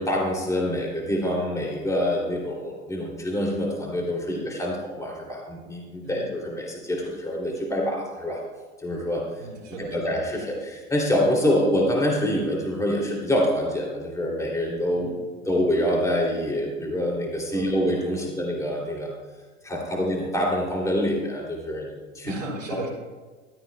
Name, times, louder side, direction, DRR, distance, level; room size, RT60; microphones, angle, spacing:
voice 1, 0.0-8.4 8.8-9.2 9.8-15.1 15.4-19.1 19.6-21.9 22.1-22.3 22.7-22.9, equal, 10° left, -2 dB, 2.9 m, -26 dB
voice 2, 9.4-10.1 14.9-15.2 17.5-17.8 18.1-18.3 19.8-20.0 22.2-22.9, right 3 dB, 75° right, -7 dB, 3.7 m, -36 dB
15.5 x 13.0 x 2.3 m, 1.3 s
figure-of-eight pair, 90°, 39 cm